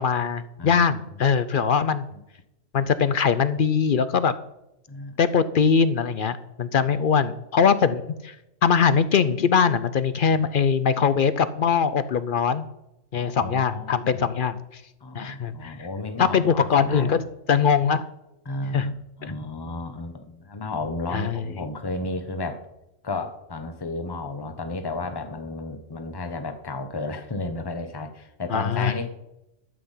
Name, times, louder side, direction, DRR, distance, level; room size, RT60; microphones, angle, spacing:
voice 1, 0.0-2.0 2.7-4.3 5.2-8.3 8.6-12.7 13.1-14.8 15.1-15.8 16.2-18.0 18.7-18.9 19.2-19.3 21.1-21.4 28.5-28.9, left 6 dB, 55° left, 14 dB, 0.6 m, -22 dB
voice 2, 13.1-14.4 15.0-17.2 18.4-18.9 19.2-22.6 23.0-29.1, left 2 dB, 20° left, 7 dB, 1.0 m, -33 dB
12.5 x 5.8 x 8.2 m, 0.88 s
omnidirectional pair, 1.3 m